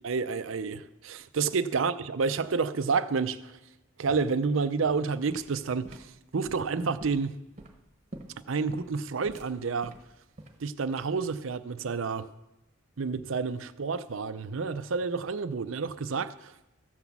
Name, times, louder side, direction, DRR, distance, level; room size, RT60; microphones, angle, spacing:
voice 1, 0.0-3.6 4.0-6.1 6.3-7.4 8.5-9.9 10.6-12.3 13.0-16.5, right 5 dB, 80° right, 0.6 m, -29 dB
sound 1, 5.0-11.3, right 1 dB, 35° right, 1.1 m, -48 dB
15.0 x 6.0 x 7.1 m
head